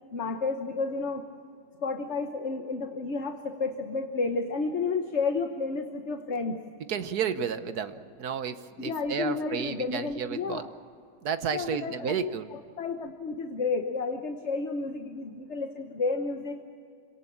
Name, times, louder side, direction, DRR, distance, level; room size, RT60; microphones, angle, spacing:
voice 1, 0.1-1.2 1.8-6.6 8.8-10.7 11.5-16.6, left 4 dB, 45° left, 5 dB, 1.3 m, -31 dB
voice 2, 6.9-10.6 11.2-12.5, right 7 dB, 65° right, 11 dB, 1.5 m, -32 dB
26.0 x 18.0 x 8.6 m, 2.3 s
omnidirectional pair, 1.9 m